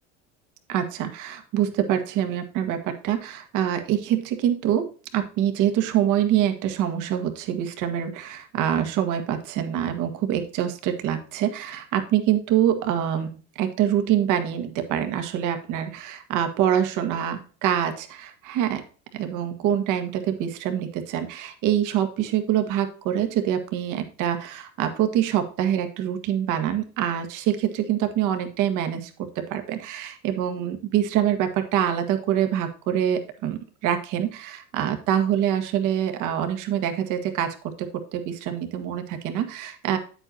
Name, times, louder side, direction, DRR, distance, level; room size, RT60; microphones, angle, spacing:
voice 1, 0.7-18.8 19.1-29.1 29.3-40.0, right 10 dB, 60° right, 7 dB, 1.7 m, -25 dB
8.8 x 7.9 x 2.8 m, 0.38 s
supercardioid pair, 100°, 34 cm